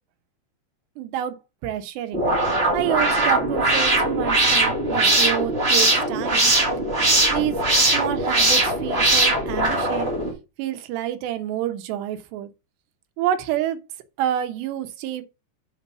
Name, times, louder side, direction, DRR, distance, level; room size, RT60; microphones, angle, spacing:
voice 1, 1.0-1.4 1.6-2.2 2.7-6.5 7.3-7.6 7.9-10.1 10.6-12.5 13.2-13.8 14.2-15.2, right 11 dB, 80° right, 3.1 m, -28 dB
sound 1, 2.1-10.3, right 2 dB, 25° right, 1.3 m, -20 dB
6.9 x 5.1 x 5.9 m
omnidirectional pair, 5.0 m